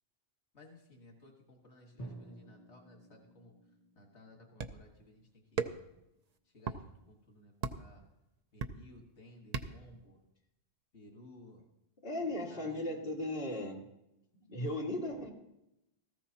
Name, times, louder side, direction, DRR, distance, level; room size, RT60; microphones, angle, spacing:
voice 1, 0.5-3.5 4.0-5.8 6.5-8.0 8.5-10.2 10.9-11.7 12.2-13.0, left 1 dB, 90° left, 1 dB, 2.0 m, -57 dB
Drum, 2.0-5.8, right 2 dB, 40° left, 1.7 m, -53 dB
sound 1, 4.6-4.9 5.6-6.0 6.6-6.8 7.6-7.9 8.6-9.0 9.5-9.9, right 5 dB, 45° right, 0.7 m, -37 dB
voice 2, 12.0-13.8 14.5-15.3, left 1 dB, 55° left, -2 dB, 2.2 m, -36 dB
18.0 x 14.5 x 2.9 m, 0.87 s
omnidirectional pair, 1.1 m